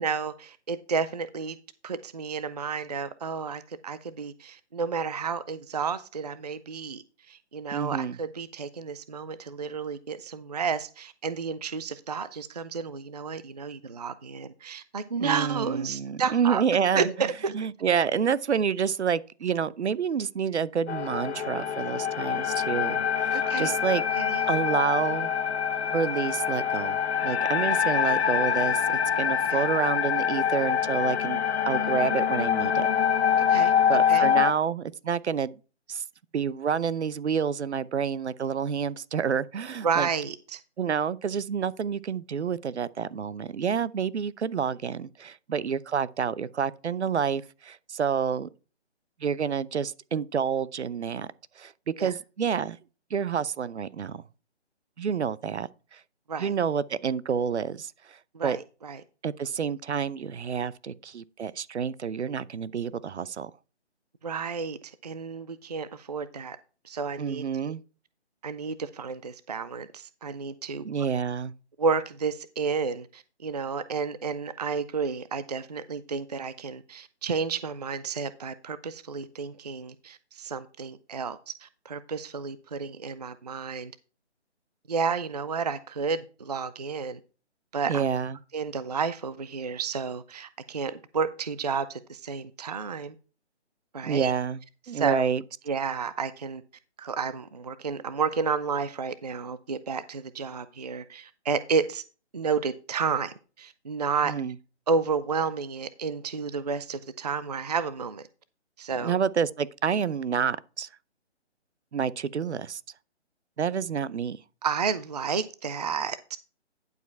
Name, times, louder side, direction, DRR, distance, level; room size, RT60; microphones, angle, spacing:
voice 1, 0.0-1.6 1.8-16.6 16.9-17.6 23.3-23.7 24.1-24.6 29.5-29.6 33.4-33.7 34.1-34.3 39.8-40.6 52.0-52.2 56.3-56.5 58.3-59.0 64.2-66.6 66.8-67.4 68.4-71.1 71.8-83.9 84.9-87.2 87.7-88.1 88.5-93.1 93.9-94.3 94.9-95.2 95.7-96.6 97.0-102.0 102.3-104.3 104.9-108.2 108.8-109.2 114.6-116.4, right 5 dB, 35° right, 0.4 m, -31 dB
voice 2, 7.7-8.1 15.2-17.1 17.5-24.0 24.5-25.3 25.9-32.9 33.5-35.5 35.9-36.0 36.3-40.1 40.8-48.5 49.2-51.3 51.6-52.8 53.1-54.2 55.0-56.0 56.4-58.6 59.2-63.5 67.2-67.8 70.8-71.5 87.9-88.4 94.0-94.6 94.9-95.4 104.2-104.5 109.0-110.9 111.9-112.8 113.6-114.4, right 7 dB, 70° right, 0.7 m, -28 dB
sound 1, 20.9-34.5, left 8 dB, 65° left, 0.8 m, -25 dB
11.0 x 4.9 x 4.5 m
hypercardioid pair, 160°, 35 cm